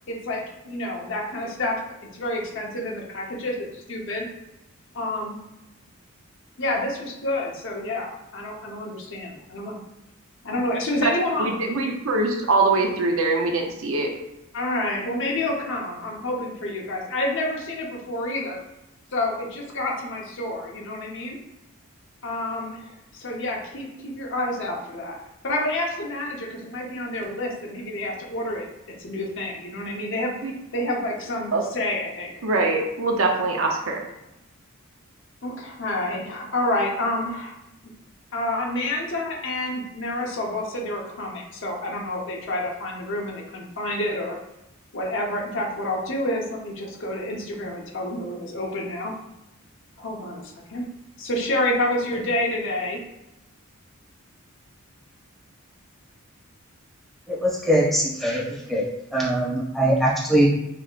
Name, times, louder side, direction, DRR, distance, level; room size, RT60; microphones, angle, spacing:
voice 1, 0.1-1.8 2.1-4.3 4.9-5.4 6.6-9.8 10.4-11.5 14.5-18.6 19.1-21.4 22.2-25.2 25.4-28.7 29.0-30.3 30.7-32.4 35.4-37.5 38.3-44.4 44.9-49.1 50.0-50.9 51.2-53.0, left 1 dB, 60° left, -1 dB, 0.9 m, -28 dB
voice 2, 11.4-14.1 30.4-30.5 31.5-31.6 32.4-34.0, right 3 dB, 70° right, 2 dB, 0.7 m, -23 dB
voice 3, 57.3-58.8 59.1-60.5, right 1 dB, ahead, -7 dB, 1.5 m, -22 dB
4.8 x 3.5 x 2.4 m, 0.90 s
head